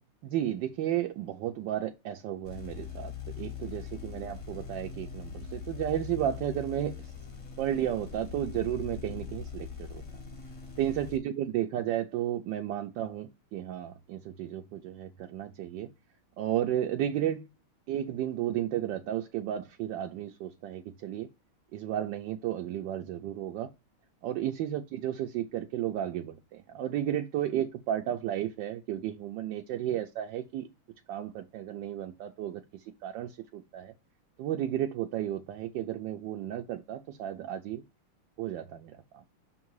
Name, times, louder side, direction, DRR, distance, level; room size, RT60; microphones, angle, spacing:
voice 1, 0.2-7.1 7.6-10.0 10.8-15.9 16.4-17.5 17.9-21.3 21.7-23.7 24.2-30.7 31.1-32.6 33.0-33.9 34.4-37.8 38.4-39.2, right 11 dB, 75° right, 1.0 m, -33 dB
sound 1, 2.4-11.2, left 6 dB, 35° left, 1.3 m, -41 dB
5.9 x 3.7 x 4.6 m
omnidirectional pair, 2.4 m